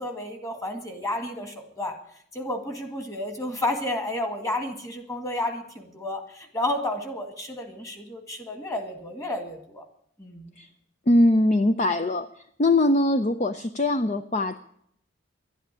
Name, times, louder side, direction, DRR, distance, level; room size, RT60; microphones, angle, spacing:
voice 1, 0.0-2.0 2.3-9.8 10.2-10.5, left 1 dB, 15° left, 5 dB, 2.0 m, -31 dB
voice 2, 11.1-12.3 12.6-14.6, left 1 dB, 35° left, 9 dB, 0.6 m, -21 dB
12.0 x 10.0 x 9.9 m, 0.68 s
head